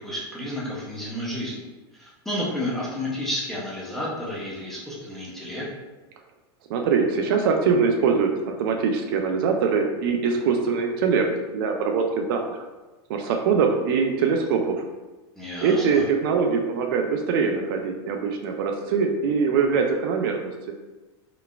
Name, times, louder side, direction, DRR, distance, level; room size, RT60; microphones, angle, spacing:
voice 1, 0.0-1.6 2.0-5.6 15.3-16.0, left 1 dB, ahead, -6 dB, 0.6 m, -31 dB
voice 2, 6.7-11.3 11.5-12.6 13.1-14.8 15.6-20.5, right 5 dB, 50° right, 3 dB, 0.4 m, -23 dB
3.8 x 3.3 x 2.3 m, 1.2 s
supercardioid pair, 165°, 14 cm